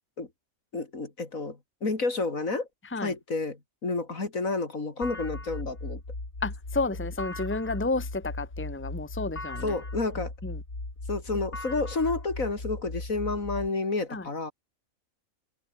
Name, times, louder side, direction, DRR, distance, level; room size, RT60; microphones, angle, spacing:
voice 1, 0.7-2.7 3.0-6.0 9.6-10.3 11.1-14.5, left 3 dB, 70° left, 3.9 m, -30 dB
sound 1, 5.0-13.7, left 2 dB, 50° left, 5.0 m, -37 dB
voice 2, 6.4-9.7 10.4-10.6 14.1-14.2, left 3 dB, 10° left, 1.5 m, -31 dB
omnidirectional pair, 1.5 m